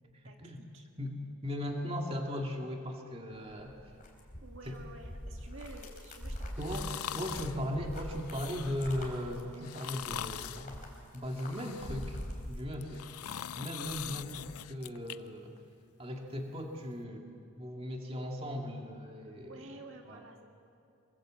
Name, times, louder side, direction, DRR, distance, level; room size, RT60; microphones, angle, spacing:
voice 1, 0.2-0.8 4.4-7.2 14.2-14.4 19.4-20.4, right 2 dB, 55° right, 2 dB, 2.0 m, -51 dB
voice 2, 1.4-3.8 4.6-4.8 6.6-10.7 11.1-12.2 12.5-13.2 13.6-15.6 16.0-17.3 17.6-19.7 20.0-20.3, left 1 dB, 25° right, 1 dB, 2.2 m, -38 dB
sound 1, 3.3-13.3 13.6-14.5, equal, 35° left, 4.0 m, -44 dB
sound 2, 6.6-7.6 8.2-8.9 9.6-10.7 11.3-12.2 12.7-15.2 15.6-15.7, left 10 dB, 85° left, 0.6 m, -42 dB
25.5 x 23.5 x 7.7 m, 2.5 s
head